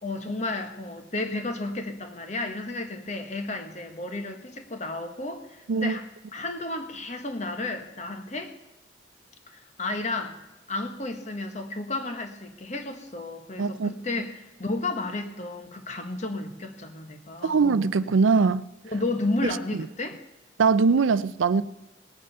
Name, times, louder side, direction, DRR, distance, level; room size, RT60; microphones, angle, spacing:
voice 1, 0.0-6.1 6.3-8.5 9.5-10.4 10.7-17.6 18.8-20.2, left 2 dB, 35° left, 1.2 m, -32 dB
voice 2, 13.6-13.9 17.4-18.6 20.6-21.6, right 4 dB, 85° right, 0.5 m, -21 dB
18.5 x 8.7 x 5.5 m
head